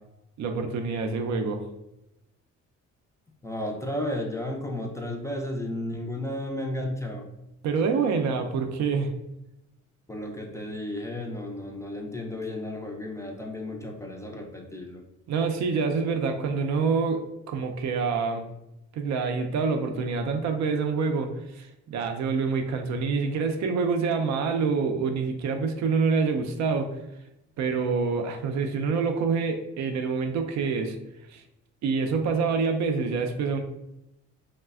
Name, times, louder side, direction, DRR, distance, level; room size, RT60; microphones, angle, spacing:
voice 1, 0.4-1.6 7.6-9.1 15.3-18.5 18.9-26.9 27.6-31.0 31.3-31.4 31.8-33.6, right 5 dB, 70° right, 5 dB, 0.4 m, -26 dB
voice 2, 3.4-7.3 10.1-15.0, left 1 dB, 10° left, 0 dB, 0.3 m, -33 dB
3.1 x 2.1 x 2.3 m, 0.88 s
cardioid pair, 90°, 30 cm